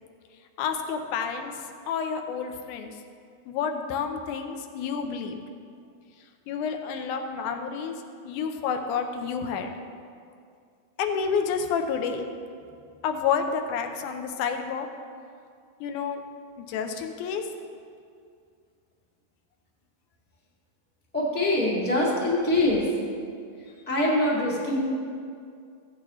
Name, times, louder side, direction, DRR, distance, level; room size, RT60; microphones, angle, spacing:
voice 1, 0.6-1.5 1.9-2.9 3.5-5.4 6.5-9.7 11.0-12.2 13.0-14.9 15.8-16.2 16.6-17.5, left 6 dB, 75° left, 5 dB, 1.9 m, -29 dB
voice 2, 21.1-22.9 23.6-24.8, left 1 dB, 5° left, -5 dB, 0.7 m, -24 dB
16.0 x 8.6 x 3.1 m, 2.3 s
omnidirectional pair, 4.2 m